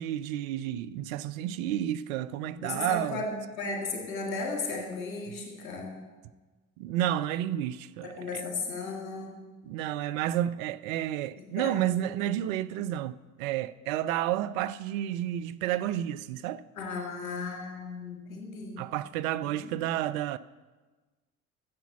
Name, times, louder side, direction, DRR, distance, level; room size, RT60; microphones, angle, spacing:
voice 1, 0.0-3.2 6.8-8.4 9.7-16.6 18.8-20.4, right 12 dB, 75° right, 0.5 m, -31 dB
voice 2, 2.6-5.9 8.0-9.3 11.4-12.2 16.8-18.8 19.6-19.7, left 3 dB, 80° left, 2.0 m, -35 dB
9.6 x 7.2 x 7.2 m
hypercardioid pair, 50°, 41 cm